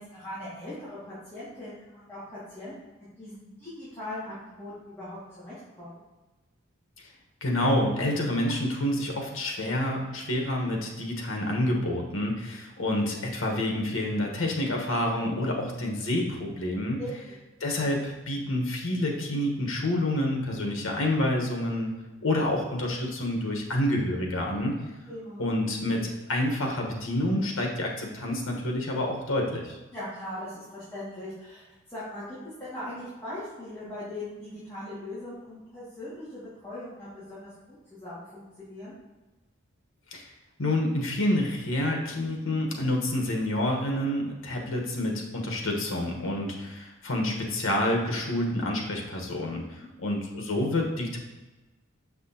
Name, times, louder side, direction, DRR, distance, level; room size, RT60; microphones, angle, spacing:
voice 1, 0.0-2.7 3.2-5.2 5.4-6.0 17.0-17.4 25.1-25.5 29.9-37.5 37.9-38.9 49.7-49.9, left 1 dB, 10° left, -13 dB, 2.2 m, -40 dB
voice 2, 7.4-17.0 17.6-21.9 22.2-24.8 25.4-29.8 40.1-40.3 40.6-51.2, left 1 dB, 80° left, 0 dB, 1.3 m, -28 dB
6.9 x 6.0 x 2.9 m, 1.1 s
head